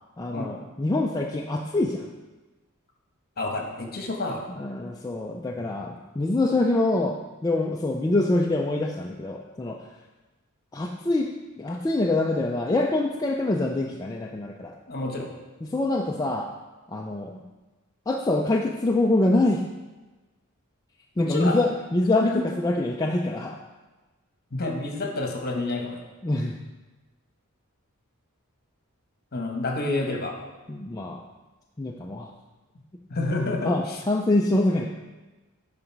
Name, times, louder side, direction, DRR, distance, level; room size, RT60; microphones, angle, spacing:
voice 1, 0.2-2.1 4.6-9.8 10.7-11.3 11.6-14.7 15.6-16.5 16.9-17.4 18.1-19.6 21.2-23.6 26.2-26.6 30.7-31.2 31.8-32.3 33.6-34.9, left 2 dB, 15° left, 0 dB, 0.4 m, -25 dB
voice 2, 3.4-4.5 14.9-15.3 21.2-21.6 22.2-22.4 24.5-26.0 29.3-30.4 33.1-34.0, left 2 dB, 45° left, 1 dB, 1.2 m, -29 dB
10.0 x 4.0 x 4.6 m, 1.2 s
head